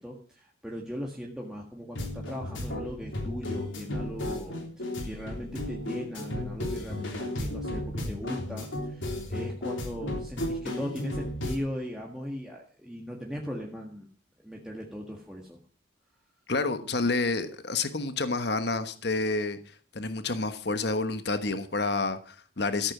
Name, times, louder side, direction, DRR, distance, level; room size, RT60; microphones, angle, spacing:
voice 1, 0.0-14.1 14.4-15.6, equal, 5° right, 1.6 m, -39 dB
sound 1, 1.9-11.5, left 1 dB, 75° left, 3.4 m, -34 dB
voice 2, 16.5-19.6 19.9-22.9, left 3 dB, 55° left, 1.2 m, -29 dB
14.0 x 8.8 x 6.0 m
head